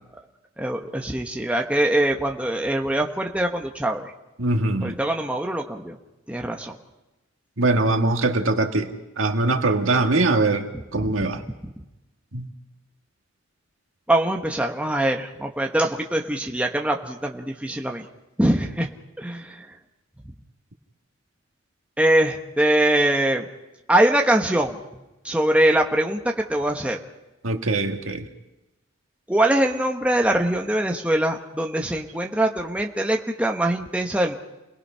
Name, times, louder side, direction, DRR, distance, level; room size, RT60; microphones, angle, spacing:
voice 1, 0.6-4.1 4.8-5.9 6.3-6.8 11.0-11.1 14.1-18.0 18.4-18.9 19.2-19.7 22.0-23.5 23.9-24.8 25.2-27.0 29.3-34.4, right 1 dB, 5° right, 2 dB, 1.2 m, -23 dB
voice 2, 4.4-5.0 7.6-8.9 9.2-10.7 10.9-11.4 12.3-12.5 27.4-28.2, right 2 dB, 75° right, 4 dB, 1.9 m, -22 dB
29.0 x 19.5 x 5.7 m, 1.0 s
head